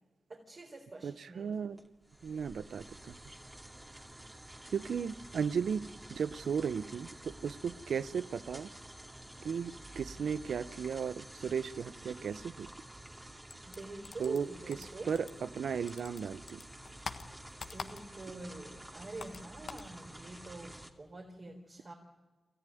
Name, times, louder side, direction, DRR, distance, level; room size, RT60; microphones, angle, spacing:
voice 1, 0.3-1.7 13.6-15.4 17.7-21.9, right 2 dB, 50° right, 0 dB, 4.3 m, -46 dB
voice 2, 1.0-1.8 2.2-3.2 4.7-8.7 9.4-12.7 14.2-14.5 15.0-16.6, right 6 dB, 75° right, 15 dB, 0.7 m, -35 dB
sound 1, 1.7-20.9, right 1 dB, 20° right, 2.6 m, -51 dB
sound 2, 13.5-15.6 15.9-18.4 18.6-19.9, left 5 dB, 70° left, 1.4 m, -46 dB
27.0 x 14.0 x 9.2 m, 1.3 s
supercardioid pair, 40°, 0 cm